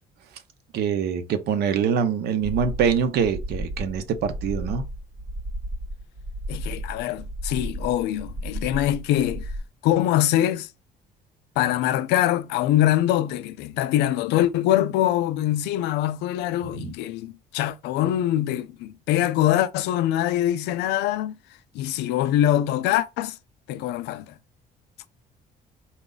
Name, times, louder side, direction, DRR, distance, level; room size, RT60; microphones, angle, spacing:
voice 1, 0.7-4.8 16.8-16.9, right 7 dB, 75° right, 0.7 m, -24 dB
sound 1, 2.4-9.6, right 1 dB, 35° right, 0.9 m, -33 dB
voice 2, 6.5-9.5 9.8-10.7 11.6-21.4 21.7-23.4 23.7-24.3, left 13 dB, 85° left, 0.4 m, -23 dB
4.0 x 2.3 x 3.8 m
cardioid pair, 110°, 17 cm